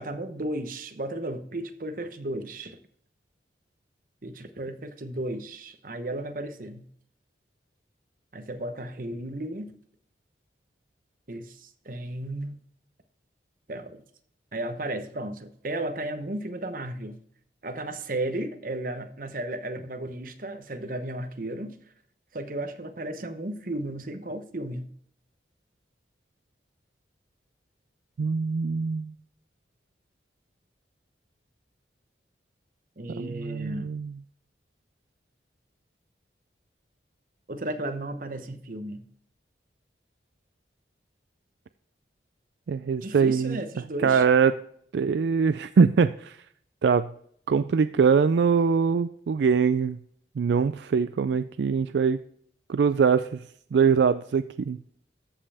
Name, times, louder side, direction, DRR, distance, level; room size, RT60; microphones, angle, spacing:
voice 1, 0.0-2.8 4.2-6.9 8.3-9.7 11.3-12.6 13.7-14.0 14.5-17.2 17.6-21.8 22.3-24.9 33.0-33.9 37.5-39.0 43.0-44.2, right 1 dB, 50° right, 0.9 m, -34 dB
voice 2, 28.2-29.1 33.2-34.2 42.7-43.6 44.0-44.5 44.9-46.4 46.8-47.1 47.5-50.0 50.4-52.2 52.7-53.4 53.7-54.8, right 6 dB, 75° right, 0.4 m, -23 dB
14.0 x 5.5 x 3.4 m
head